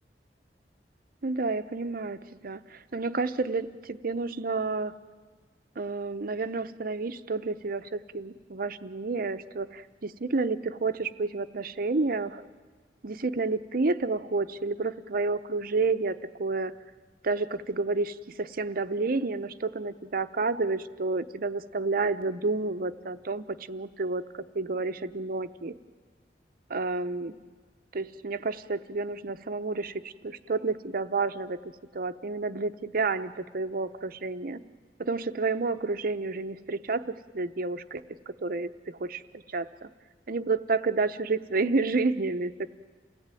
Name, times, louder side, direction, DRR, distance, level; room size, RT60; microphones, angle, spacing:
voice 1, 1.2-4.9 5.8-12.4 13.0-16.7 17.2-25.7 26.7-27.4 27.9-31.6 31.9-34.6 35.0-39.2 39.5-39.9 40.3-42.7, right 3 dB, 55° right, 11 dB, 0.7 m, -30 dB
28.5 x 17.0 x 9.1 m, 1.4 s
head